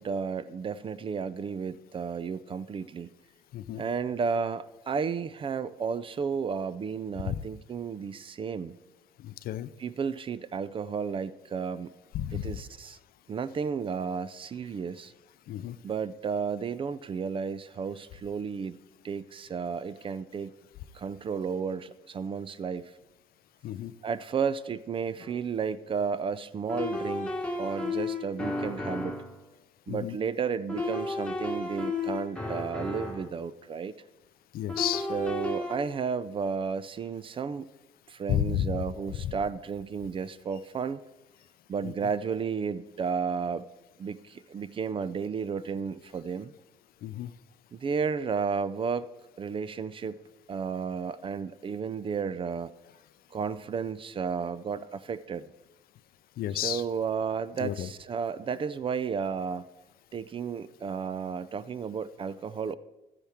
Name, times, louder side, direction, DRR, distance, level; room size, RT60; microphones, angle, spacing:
voice 1, 0.0-3.1 3.8-8.8 9.8-11.9 12.3-13.0 13.3-15.1 15.8-18.8 19.0-20.5 20.9-22.9 24.0-27.3 27.6-29.2 29.9-33.9 35.1-37.7 38.1-41.0 41.7-43.7 44.0-46.5 47.7-49.1 49.4-50.2 50.5-52.7 53.3-55.5 56.6-59.7 60.1-62.8, right 6 dB, 30° right, 16 dB, 0.4 m, -32 dB
voice 2, 3.5-3.8 7.2-7.4 9.2-9.7 12.1-12.6 15.5-15.8 23.6-23.9 29.9-30.2 34.5-35.1 38.3-38.8 39.2-39.3 41.8-41.9 47.0-47.3 56.4-56.8 57.6-57.9, left 12 dB, 60° left, 15 dB, 0.5 m, -31 dB
sound 1, 25.2-25.3 26.7-29.4 30.7-33.4 34.7-35.8, left 2 dB, 5° left, 1.4 m, -33 dB
12.5 x 10.0 x 3.5 m, 1.0 s
cardioid pair, 110°, 17 cm